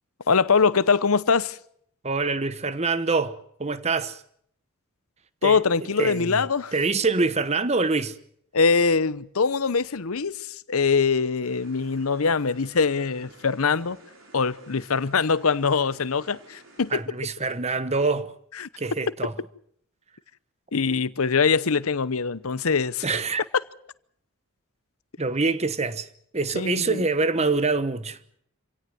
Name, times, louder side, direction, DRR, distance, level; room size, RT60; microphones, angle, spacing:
voice 1, 0.3-1.6 5.4-6.7 8.5-14.0 14.3-17.0 18.6-18.7 20.7-23.0 26.5-27.0, left 5 dB, 80° left, 0.8 m, -23 dB
voice 2, 2.0-4.2 5.4-6.4 6.7-8.2 16.9-18.3 18.8-19.3 23.0-23.4 25.2-26.1 26.3-28.2, right 3 dB, 30° right, 1.1 m, -25 dB
sound 1, 11.4-17.0, right 2 dB, 65° right, 5.2 m, -52 dB
27.0 x 17.0 x 7.9 m
head